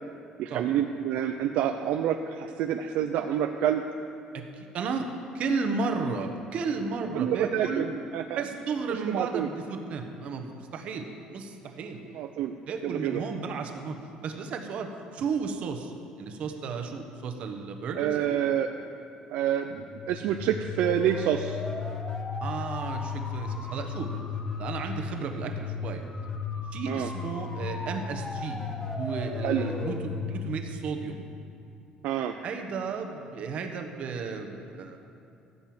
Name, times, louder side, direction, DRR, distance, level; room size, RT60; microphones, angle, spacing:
voice 1, 0.4-3.8 7.1-8.4 8.9-9.5 12.1-12.5 12.8-13.2 18.0-18.7 19.3-21.6 26.9-27.1 29.4-29.6 32.0-32.3, right 10 dB, 80° right, 6 dB, 0.5 m, -28 dB
voice 2, 4.3-5.1 5.3-7.9 8.4-12.0 12.7-14.0 14.2-18.4 22.4-24.1 24.6-26.0 26.7-28.6 28.8-31.2 32.4-35.0, right 4 dB, 55° right, 5 dB, 1.2 m, -33 dB
sound 1, 19.8-31.6, left 5 dB, 25° left, 1.2 m, -35 dB
15.0 x 5.5 x 7.8 m, 2.6 s
cardioid pair, 130°, 3 cm